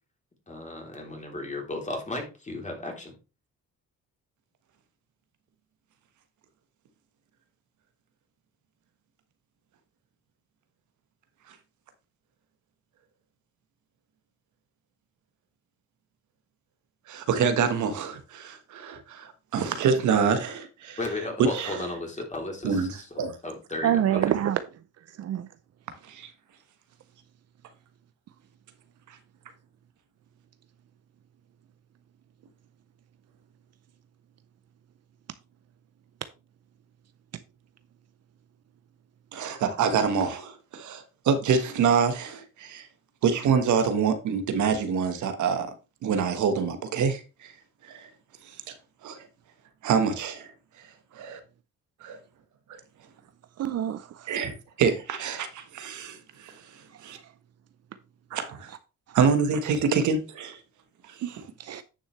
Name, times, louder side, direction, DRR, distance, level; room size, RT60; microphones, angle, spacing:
voice 1, 0.5-3.1 21.0-24.2, left 2 dB, 25° left, 3.2 m, -35 dB
voice 2, 17.1-21.0 21.4-21.8 22.6-23.4 26.0-26.3 29.1-29.2 39.3-42.9 43.2-45.7 46.0-47.5 47.8-48.1 48.4-48.7 49.0-49.3 49.8-50.5 50.8-51.4 52.0-52.2 54.3-57.2 58.3-58.7 59.1-60.6 61.0-61.4, right 6 dB, 75° right, 1.4 m, -26 dB
voice 3, 23.8-24.6 25.2-25.5 53.6-54.3 56.9-57.0 59.1-59.2 61.2-61.8, right 10 dB, 55° right, 0.6 m, -27 dB
9.9 x 6.3 x 3.2 m
cardioid pair, 90°, 30 cm